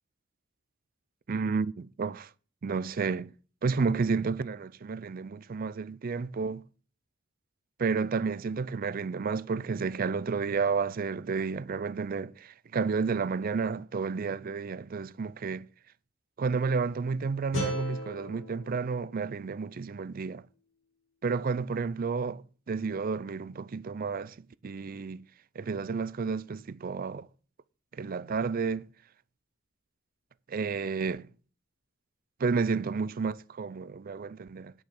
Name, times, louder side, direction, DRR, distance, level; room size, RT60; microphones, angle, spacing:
voice 1, 1.3-2.3 2.6-3.3 3.6-6.7 7.8-15.7 16.4-20.4 21.2-24.4 24.6-25.2 25.6-27.3 27.9-28.9 30.5-31.3 32.4-34.7, right 5 dB, 45° right, 0.4 m, -31 dB
sound 1, 17.5-20.6, left 1 dB, 75° left, 5.3 m, -39 dB
9.3 x 5.6 x 6.5 m
head